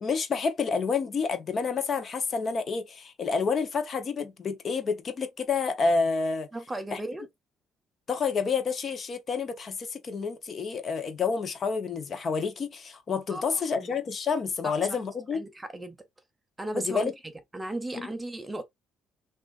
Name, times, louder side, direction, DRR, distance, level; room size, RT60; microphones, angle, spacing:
voice 1, 0.0-6.5 6.9-7.0 8.1-15.4 16.7-17.1 18.0-18.1, left 5 dB, 35° left, 0.8 m, -29 dB
voice 2, 6.5-7.3 13.3-13.9 14.6-15.0 15.3-16.0 16.6-17.1 17.5-18.6, right 1 dB, 10° right, 0.4 m, -35 dB
6.0 x 2.5 x 2.4 m
cardioid pair, 145°, 0 cm